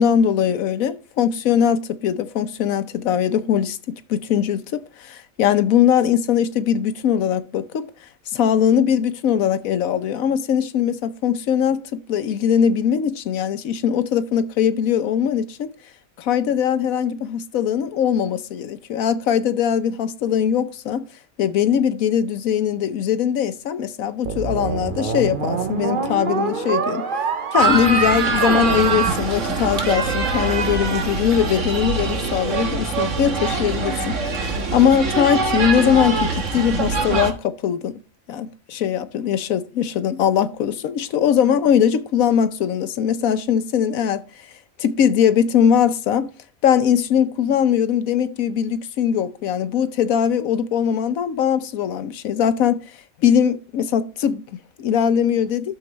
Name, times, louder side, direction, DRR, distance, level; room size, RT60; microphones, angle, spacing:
voice 1, 0.0-7.9 8.3-15.7 16.2-21.0 21.4-27.0 27.5-38.0 38.3-44.2 44.8-46.3 46.6-52.8 53.2-55.8, left 8 dB, 85° left, 1.2 m, -21 dB
sound 1, 24.3-29.7, right 5 dB, 45° right, 1.0 m, -25 dB
sound 2, 27.6-37.3, right 3 dB, 65° right, 1.7 m, -23 dB
12.0 x 7.0 x 3.1 m
omnidirectional pair, 1.4 m